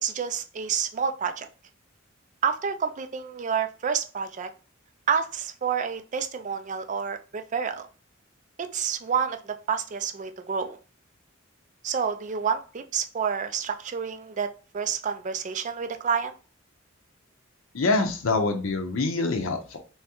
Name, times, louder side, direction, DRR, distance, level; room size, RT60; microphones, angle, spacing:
voice 1, 0.0-1.5 2.4-4.5 5.1-7.9 8.6-10.8 11.8-14.5 14.7-16.3, right 6 dB, 40° right, 9 dB, 0.4 m, -29 dB
voice 2, 17.7-19.8, left 3 dB, 80° left, 4 dB, 0.6 m, -25 dB
3.5 x 3.1 x 2.9 m, 0.36 s
head